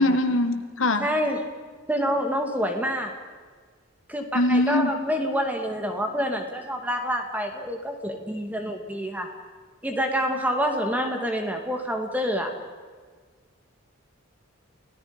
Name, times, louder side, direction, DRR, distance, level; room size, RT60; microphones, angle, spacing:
voice 1, 0.0-1.1 4.3-4.9, left 1 dB, 75° left, 7 dB, 1.9 m, -22 dB
voice 2, 1.0-1.5 1.9-3.1 4.1-9.3 9.8-12.5, equal, 10° right, 3 dB, 2.3 m, -27 dB
29.5 x 18.5 x 5.3 m, 1.5 s
head